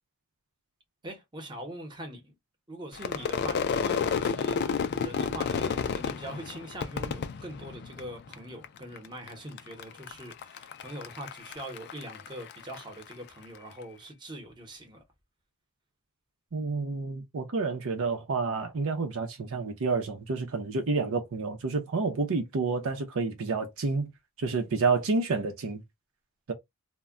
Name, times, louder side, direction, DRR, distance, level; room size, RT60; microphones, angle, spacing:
voice 1, 1.0-2.3 2.7-15.0, right 1 dB, 20° right, 0.8 m, -42 dB
Crowd / Fireworks, 2.9-8.3 8.6-9.3 9.6-13.1, left 6 dB, 50° left, 0.3 m, -31 dB
voice 2, 16.5-24.1 24.4-25.8, right 4 dB, 65° right, 0.6 m, -29 dB
2.2 x 2.1 x 3.6 m
head